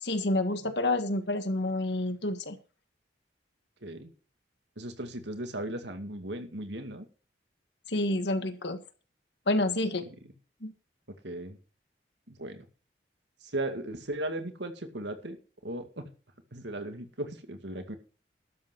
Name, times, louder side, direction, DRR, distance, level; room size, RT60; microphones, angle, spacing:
voice 1, 0.0-2.6 7.9-8.8 9.5-10.1 10.6-10.7, left 2 dB, 75° left, 8 dB, 1.7 m, -28 dB
voice 2, 3.8-4.1 4.8-7.1 10.2-10.3 11.2-11.6 12.3-12.7 13.4-15.4 15.6-16.1 16.5-18.0, right 1 dB, 80° right, 7 dB, 2.2 m, -37 dB
12.5 x 7.9 x 6.1 m, 0.37 s
head